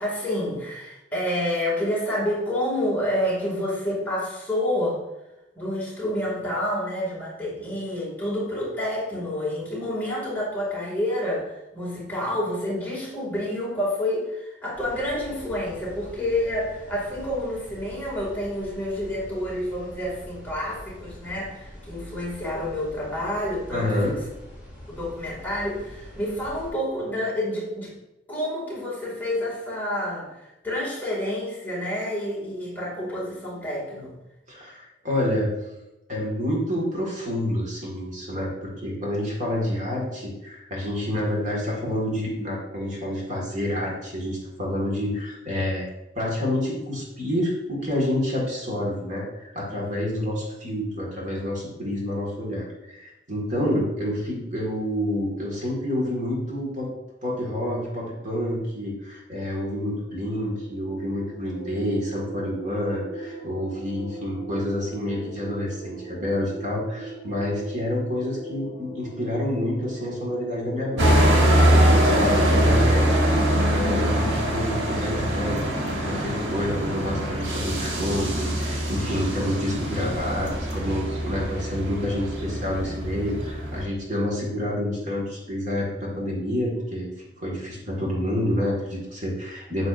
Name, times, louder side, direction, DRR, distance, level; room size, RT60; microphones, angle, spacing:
voice 1, 0.0-5.0 5.5-24.1 24.9-27.9 28.3-34.1, left 1 dB, 10° left, -6 dB, 2.3 m, -28 dB
sound 1, 14.7-26.7, equal, 10° right, 2.4 m, -44 dB
voice 2, 23.7-24.1 34.5-35.5 36.1-45.9 46.2-56.9 57.2-73.2 73.7-87.1 87.4-89.9, left 1 dB, 40° right, -3 dB, 1.9 m, -28 dB
sound 2, 60.0-74.3, right 2 dB, 85° right, 2.8 m, -41 dB
sound 3, 71.0-83.8, equal, 70° right, 1.4 m, -23 dB
9.0 x 6.5 x 2.6 m, 0.93 s
head